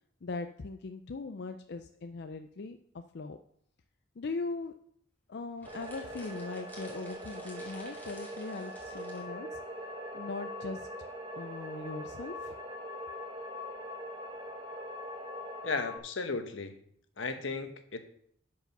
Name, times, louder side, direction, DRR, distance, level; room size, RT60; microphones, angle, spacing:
voice 1, 0.2-3.4 4.2-4.7 5.3-9.6 10.1-10.9 11.3-12.5, left 3 dB, 60° left, 7 dB, 0.5 m, -40 dB
sound 1, 5.6-9.3, left 1 dB, 10° left, 2.3 m, -53 dB
sound 2, 5.6-16.0, equal, 25° right, 1.2 m, -42 dB
voice 2, 15.6-16.8 17.2-18.0, left 4 dB, 80° left, 8 dB, 1.0 m, -35 dB
10.5 x 4.8 x 5.8 m, 0.68 s
head